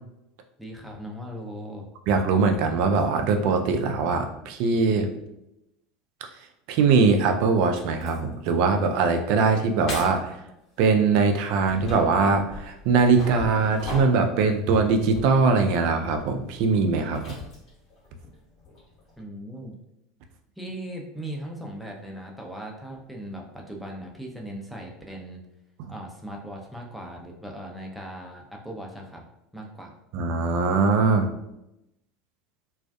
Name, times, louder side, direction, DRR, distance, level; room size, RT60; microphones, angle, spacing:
voice 1, 0.6-1.8 19.2-19.7 20.6-25.4 25.9-29.2 29.5-29.9, right 1 dB, ahead, -1 dB, 0.6 m, -38 dB
voice 2, 2.1-5.1 6.7-10.4 10.8-17.4 30.1-31.3, right 4 dB, 60° right, 6 dB, 0.3 m, -21 dB
sound 1, 7.1-7.2 7.7-8.4 8.7-9.0 9.4-9.5 9.9-10.3 11.1-19.2, left 2 dB, 50° left, 1.2 m, -40 dB
2.4 x 2.3 x 2.3 m, 0.86 s
figure-of-eight pair, 75°, 0 cm